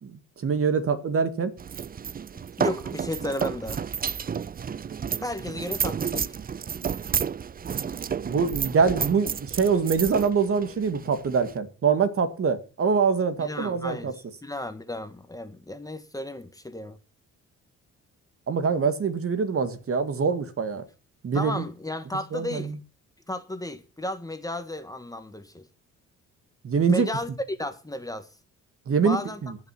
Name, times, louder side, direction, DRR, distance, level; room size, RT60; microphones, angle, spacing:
voice 1, 0.0-1.5 8.2-14.1 18.5-20.8 21.2-21.6 22.3-22.7 26.6-27.1 28.9-29.5, right 5 dB, 50° right, 2.1 m, -24 dB
sound 1, 1.6-11.6, right 7 dB, 30° right, 0.5 m, -31 dB
voice 2, 2.6-3.9 5.2-6.4 13.4-17.0 21.3-22.7 23.3-25.7 26.9-28.3 29.0-29.4, left 1 dB, 10° left, 1.7 m, -33 dB
19.0 x 6.6 x 4.5 m
cardioid pair, 90°, 30 cm